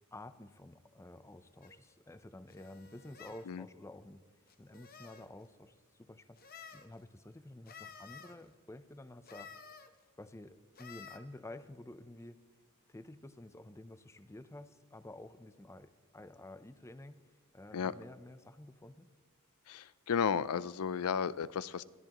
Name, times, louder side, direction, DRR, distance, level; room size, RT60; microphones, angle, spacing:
voice 1, 0.1-4.2 4.6-9.5 10.2-12.4 12.9-17.2 17.5-19.1, left 1 dB, 15° left, 12 dB, 0.5 m, -51 dB
sound 1, 1.6-1.8 2.5-3.5 4.5-5.3 6.4-6.9 7.7-8.4 9.3-9.9 10.8-11.2, left 6 dB, 40° left, 0.9 m, -52 dB
voice 2, 19.7-21.8, left 7 dB, 80° left, 18 dB, 0.4 m, -33 dB
21.5 x 14.0 x 3.0 m, 1.4 s
head